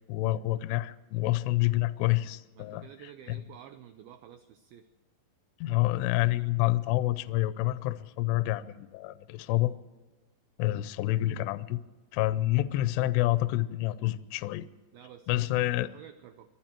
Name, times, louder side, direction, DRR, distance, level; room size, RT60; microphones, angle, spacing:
voice 1, 0.1-2.8 3.3-3.4 5.6-9.7 10.6-11.8 12.1-14.7 15.3-15.9, left 17 dB, 80° left, 14 dB, 2.7 m, -28 dB
voice 2, 2.5-4.9 14.9-16.5, right 10 dB, 90° right, 9 dB, 2.1 m, -51 dB
23.0 x 12.5 x 4.5 m, 1.2 s
omnidirectional pair, 5.2 m